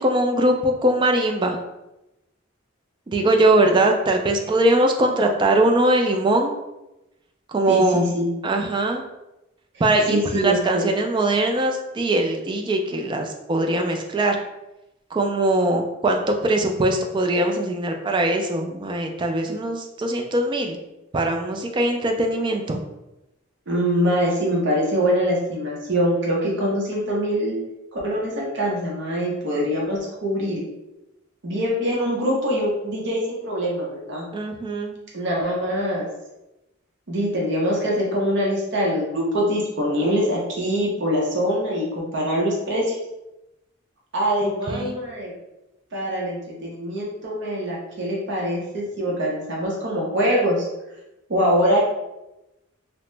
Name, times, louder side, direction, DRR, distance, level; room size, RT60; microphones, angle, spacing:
voice 1, 0.0-1.6 3.1-6.6 7.5-8.1 8.4-9.0 9.8-14.4 15.1-20.8 21.1-22.8 34.3-34.9 44.4-45.0, right 1 dB, 25° right, 3 dB, 0.3 m, -21 dB
voice 2, 7.7-8.3 10.1-10.8 23.7-27.6 27.9-30.6 31.4-34.3 35.1-36.1 37.1-43.0 44.1-45.3 45.9-50.7 51.3-51.8, equal, 60° right, -3 dB, 0.7 m, -23 dB
2.8 x 2.0 x 3.2 m, 0.95 s
head